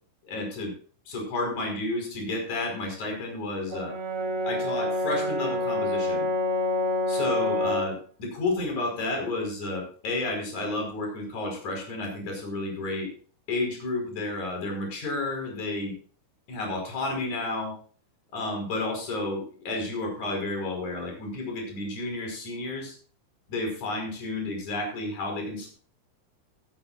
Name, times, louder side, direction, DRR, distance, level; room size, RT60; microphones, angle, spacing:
voice 1, 0.2-0.7 1.1-4.0 4.4-6.3 7.1-13.1 13.5-15.9 16.5-17.8 18.3-22.9 23.5-25.7, left 2 dB, 40° left, 2 dB, 6.1 m, -31 dB
Brass instrument, 3.7-8.0, left 1 dB, 70° right, 1.2 m, -27 dB
14.5 x 14.0 x 2.5 m, 0.41 s
omnidirectional pair, 5.6 m